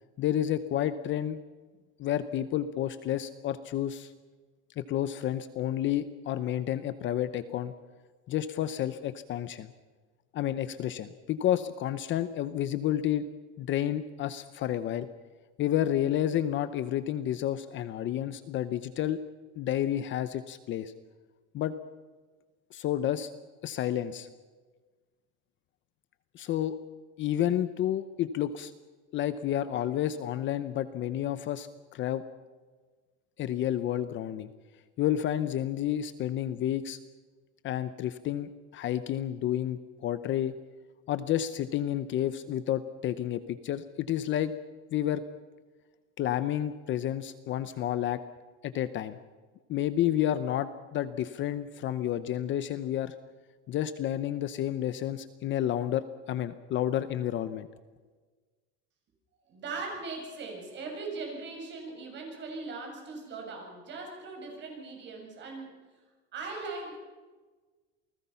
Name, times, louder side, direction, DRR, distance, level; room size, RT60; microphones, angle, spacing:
voice 1, 0.2-1.4 2.0-4.1 4.8-7.7 8.3-9.7 10.3-13.2 13.6-15.1 15.6-19.2 19.6-20.9 21.5-21.7 22.7-23.3 23.6-24.3 26.3-26.7 27.2-28.7 29.1-32.2 33.4-34.5 35.0-37.0 37.6-40.5 41.1-44.5 44.9-45.2 46.2-48.2 48.6-49.2 49.7-53.1 53.7-57.7, left 11 dB, 35° left, 13 dB, 0.8 m, -30 dB
voice 2, 59.5-65.7 66.3-67.0, right 3 dB, 35° right, 1 dB, 7.0 m, -39 dB
29.0 x 19.5 x 5.8 m, 1.4 s
cardioid pair, 175°, 32 cm